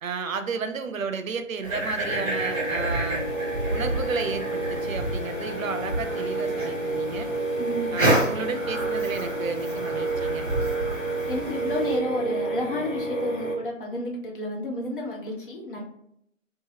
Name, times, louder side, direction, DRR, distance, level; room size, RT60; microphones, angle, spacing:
voice 1, 0.0-3.2 3.7-7.3 7.9-10.5, right 5 dB, 85° right, 7 dB, 0.6 m, -32 dB
sound 1, 1.6-12.0, right 1 dB, 20° right, 1.2 m, -30 dB
sound 2, 2.1-13.6, right 2 dB, 85° left, 1.2 m, -30 dB
voice 2, 7.6-8.0 11.3-15.8, left 1 dB, 45° left, -1 dB, 0.8 m, -31 dB
2.9 x 2.2 x 3.0 m, 0.73 s
figure-of-eight pair, 155°, 39 cm